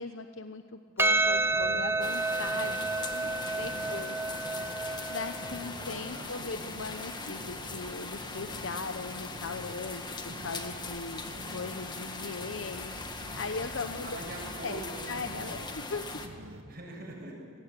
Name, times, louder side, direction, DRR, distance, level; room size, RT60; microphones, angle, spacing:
voice 1, 0.0-4.1 5.1-10.1 10.4-11.2 11.5-12.9 13.4-14.2 14.6-14.8 15.1-16.1, left 4 dB, 85° left, 7 dB, 1.0 m, -39 dB
Percussion, 1.0-5.6, right 2 dB, 10° right, 0.7 m, -30 dB
sound 1, 1.0-16.6, right 1 dB, 85° right, 1.8 m, -47 dB
sound 2, 2.0-16.3, left 3 dB, 20° left, 1.8 m, -41 dB
voice 2, 3.6-4.1 5.8-6.5 13.8-15.8 16.6-17.5, right 2 dB, 50° right, 0 dB, 7.3 m, -44 dB
26.0 x 18.5 x 9.1 m, 2.4 s
head